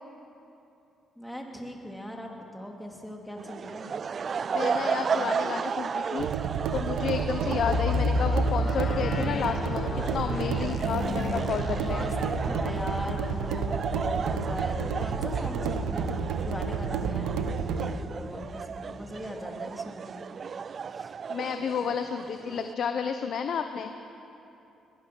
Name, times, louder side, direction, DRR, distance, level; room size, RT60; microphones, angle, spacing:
voice 1, 1.2-3.9 11.3-12.1 12.4-17.4 17.8-20.3 20.9-21.1, equal, 5° left, 1 dB, 3.0 m, -39 dB
sound 1, 3.4-22.7, right 6 dB, 45° right, 0.4 m, -34 dB
voice 2, 4.5-6.3 6.7-12.1 21.3-23.9, left 7 dB, 65° left, 7 dB, 0.9 m, -31 dB
sound 2, 6.2-17.9, right 6 dB, 90° right, 1.1 m, -31 dB
sound 3, 7.6-17.4 17.7-17.8 18.3-18.5, left 2 dB, 45° left, 1.3 m, -33 dB
22.0 x 19.0 x 6.2 m, 2.9 s
cardioid pair, 90°, 0 cm